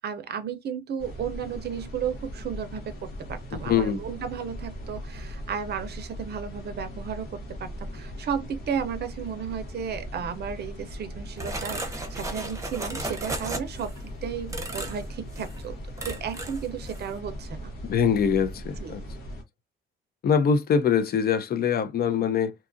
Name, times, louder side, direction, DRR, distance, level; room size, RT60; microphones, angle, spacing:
voice 1, 0.0-2.8 3.3-13.9 14.2-15.8 16.0-17.7 18.8-19.0, right 7 dB, 55° right, 0.5 m, -34 dB
sound 1, 1.0-19.4, equal, 85° left, 1.0 m, -39 dB
voice 2, 3.5-4.0 17.9-19.0 20.2-22.5, left 7 dB, 50° left, 0.5 m, -23 dB
sound 2, 11.4-14.0 14.5-15.0 15.3-15.6 16.0-16.6 16.9-17.1, right 2 dB, 15° right, 0.7 m, -35 dB
2.8 x 2.3 x 2.4 m
cardioid pair, 90°, 20 cm